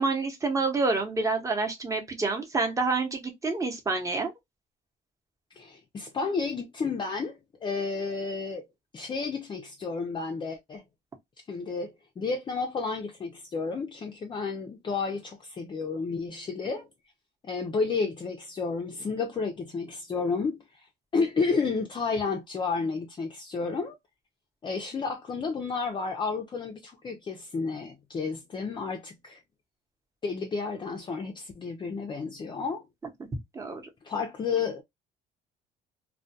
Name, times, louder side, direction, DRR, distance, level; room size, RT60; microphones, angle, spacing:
voice 1, 0.0-4.3 33.5-33.8, right 3 dB, 20° right, 0.8 m, -28 dB
voice 2, 5.5-8.6 8.9-10.8 11.5-16.9 17.4-20.9 21.1-24.0 24.6-29.4 30.2-32.9 34.0-34.8, left 4 dB, 30° left, 0.4 m, -31 dB
2.2 x 2.2 x 2.6 m
cardioid pair, 110°, 17 cm